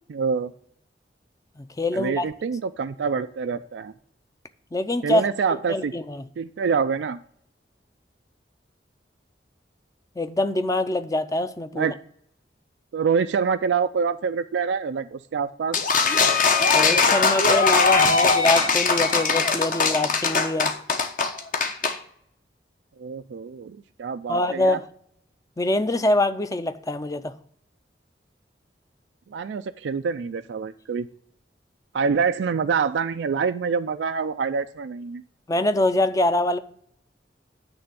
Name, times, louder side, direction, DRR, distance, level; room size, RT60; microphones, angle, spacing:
voice 1, 0.1-0.5 1.9-3.9 5.0-5.9 6.4-7.2 11.7-12.0 12.9-15.8 23.0-24.8 29.3-31.1 31.9-35.2, right 5 dB, 85° right, 0.4 m, -26 dB
voice 2, 1.6-2.2 4.7-5.2 5.7-6.2 10.2-11.9 16.7-20.7 24.3-24.9 25.6-27.3 35.5-36.6, left 2 dB, 20° left, 0.5 m, -24 dB
sound 1, 15.7-22.0, left 4 dB, 50° left, 1.0 m, -20 dB
8.9 x 3.4 x 6.8 m
head